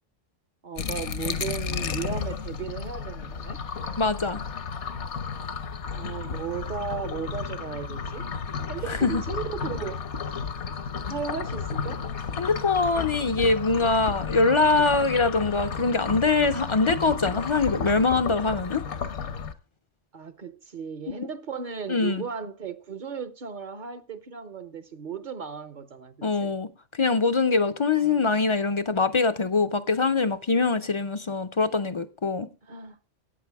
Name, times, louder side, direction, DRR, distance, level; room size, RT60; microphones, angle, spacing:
voice 1, 0.6-3.6 5.9-8.3 8.7-10.0 11.1-12.1 20.1-26.6 27.9-28.2 32.6-33.0, right 6 dB, 45° right, 0.8 m, -36 dB
sound 1, 0.8-19.5, left 6 dB, 70° left, 1.1 m, -33 dB
voice 2, 4.0-4.4 8.9-9.2 12.4-18.8 21.1-21.2 21.9-22.2 26.2-32.5, left 4 dB, 40° left, 0.4 m, -23 dB
13.5 x 8.8 x 3.4 m
omnidirectional pair, 1.2 m